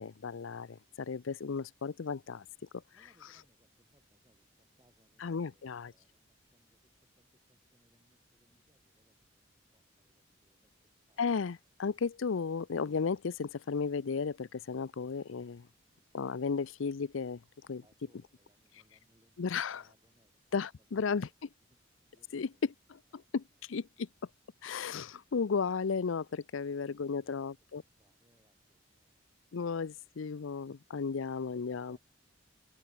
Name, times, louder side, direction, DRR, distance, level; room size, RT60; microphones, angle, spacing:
voice 1, 0.0-2.4 5.2-5.9 11.2-15.7 16.1-17.4 17.7-17.8 19.4-19.8 20.5-21.3 22.3-22.5 22.9-24.1 24.6-27.8 29.5-32.0, left 5 dB, 80° left, 0.5 m, -34 dB
voice 2, 2.9-11.2 11.5-11.7 17.8-21.4 21.6-21.8 22.1-22.6 23.1-23.6 26.5-29.2 30.0-30.5 31.5-32.0, right 1 dB, 20° right, 5.4 m, -71 dB
open air
head